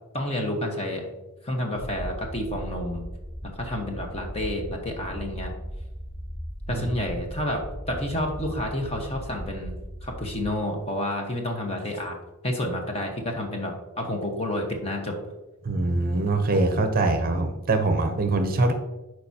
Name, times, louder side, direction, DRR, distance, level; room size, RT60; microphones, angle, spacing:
voice 1, 0.1-1.0 1.4-3.0 3.5-5.5 6.7-9.7 10.0-12.2 12.4-15.1 18.6-18.7, left 1 dB, 25° left, 2 dB, 1.2 m, -30 dB
sound 1, 1.8-10.5, equal, 75° left, 2.6 m, -37 dB
voice 2, 15.6-18.7, right 2 dB, 40° right, 7 dB, 0.7 m, -23 dB
11.0 x 4.7 x 2.8 m, 1.1 s
head